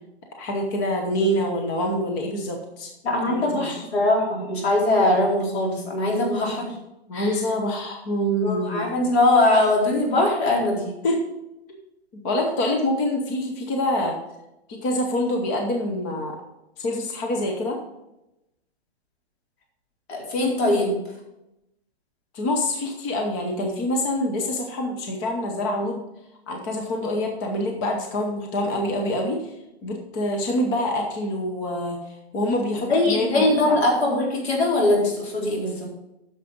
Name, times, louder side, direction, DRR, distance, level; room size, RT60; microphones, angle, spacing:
voice 1, 0.4-2.9 3.3-3.8 7.1-8.9 11.0-11.2 12.1-14.2 14.7-16.4 16.8-17.8 22.3-26.0 26.5-29.5 29.8-32.0 32.3-33.8, left 1 dB, 20° left, 2 dB, 0.8 m, -26 dB
voice 2, 3.0-6.7 7.1-7.4 8.4-10.9 20.1-20.9 32.9-35.9, left 2 dB, 75° left, -2 dB, 4.2 m, -21 dB
9.5 x 6.5 x 5.2 m, 0.91 s
hypercardioid pair, 175°, 32 cm